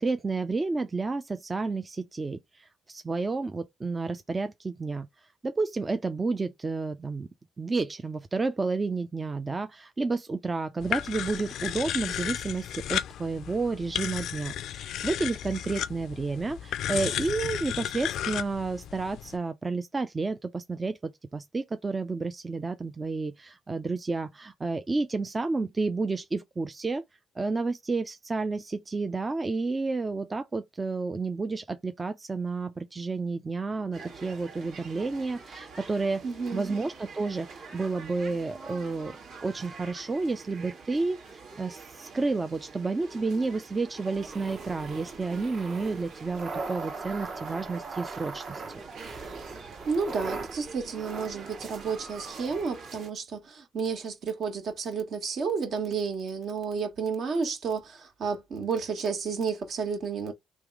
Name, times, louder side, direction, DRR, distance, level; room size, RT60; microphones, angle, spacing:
voice 1, 0.0-5.1 5.4-7.3 7.6-27.0 27.4-36.3 36.5-39.1 39.4-48.8, right 3 dB, 25° right, 0.5 m, -31 dB
sound 1, 10.8-19.4, left 11 dB, 80° left, 0.4 m, -34 dB
sound 2, 33.9-53.1, right 4 dB, 85° right, 1.9 m, -46 dB
voice 2, 36.2-36.7 49.4-60.3, right 5 dB, 60° right, 1.6 m, -31 dB
sound 3, 44.2-52.6, right 3 dB, 45° right, 1.0 m, -40 dB
3.4 x 3.0 x 4.7 m
cardioid pair, 90°, 0 cm